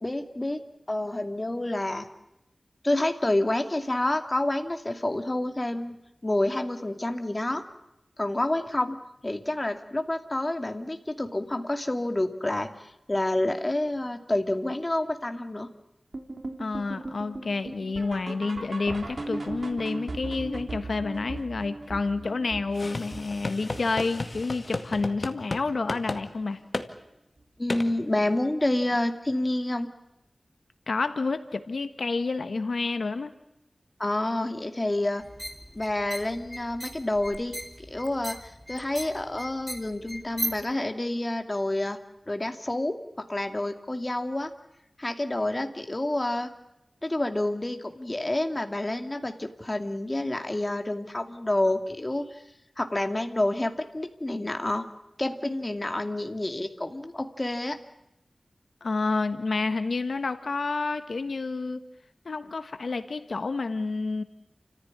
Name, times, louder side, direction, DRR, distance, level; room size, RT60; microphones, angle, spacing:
voice 1, 0.0-0.6 0.9-2.1 2.8-6.0 6.2-7.6 8.2-9.0 9.2-15.7 27.6-29.9 34.0-35.2 35.7-37.6 37.9-42.0 42.3-43.0 43.3-44.5 45.0-46.5 47.0-52.4 52.8-54.9 55.2-57.8, left 1 dB, 30° left, 6 dB, 2.4 m, -28 dB
sound 1, 16.1-25.2 25.5-25.8 26.1-26.2 26.8-26.9 27.4-27.5, right 2 dB, 60° right, 3.5 m, -39 dB
voice 2, 16.6-26.6 30.9-33.3 58.8-61.8 62.2-64.2, left 3 dB, 85° left, 10 dB, 1.3 m, -29 dB
sound 2, 22.7-25.6 25.9-26.2 26.7-26.9 27.7-27.9, left 2 dB, 50° left, 2.0 m, -33 dB
sound 3, 35.2-40.7, equal, 5° left, 2.5 m, -38 dB
30.0 x 15.0 x 9.9 m, 0.89 s
wide cardioid pair, 75°, 0 cm